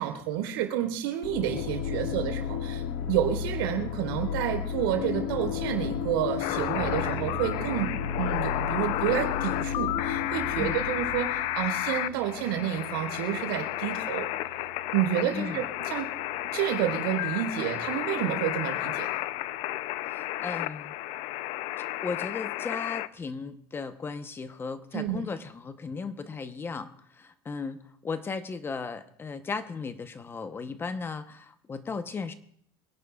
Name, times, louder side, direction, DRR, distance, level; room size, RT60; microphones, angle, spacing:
voice 1, 0.0-14.6 14.9-16.1 16.5-19.1 24.9-25.2, right 11 dB, 85° right, 3 dB, 4.0 m, -30 dB
sound 1, 1.2-12.0, left 8 dB, 70° left, 1.8 m, -33 dB
sound 2, 6.4-23.1, left 16 dB, 55° left, 0.5 m, -32 dB
sound 3, 6.7-20.4, right 7 dB, 50° right, 3.4 m, -45 dB
voice 2, 15.3-15.6 20.1-20.9 21.8-32.3, left 4 dB, 20° left, 10 dB, 0.9 m, -36 dB
26.0 x 11.0 x 2.4 m, 0.65 s
supercardioid pair, 135°, 12 cm